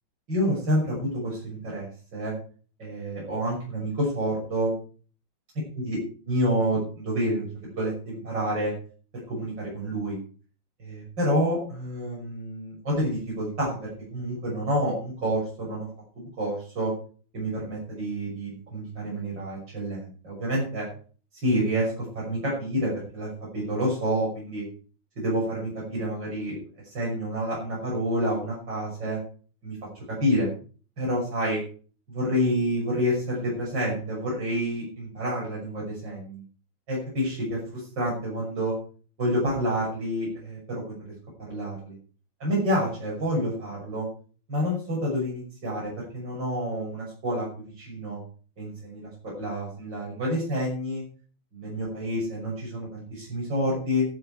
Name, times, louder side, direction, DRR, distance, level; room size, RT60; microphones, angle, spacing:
voice 1, 0.3-2.3 2.8-4.8 5.8-6.0 6.3-7.5 7.8-8.7 9.3-10.2 10.8-15.9 16.2-16.9 17.3-20.9 21.4-24.6 25.2-26.6 26.9-29.2 29.6-29.8 30.1-30.5 31.0-31.6 32.1-36.4 36.9-38.8 39.2-41.0 41.5-41.9 42.4-44.1 44.5-48.2 48.6-51.0 51.5-54.0, equal, 60° right, -4 dB, 7.2 m, -28 dB
13.0 x 12.5 x 4.7 m, 0.41 s
omnidirectional pair, 2.2 m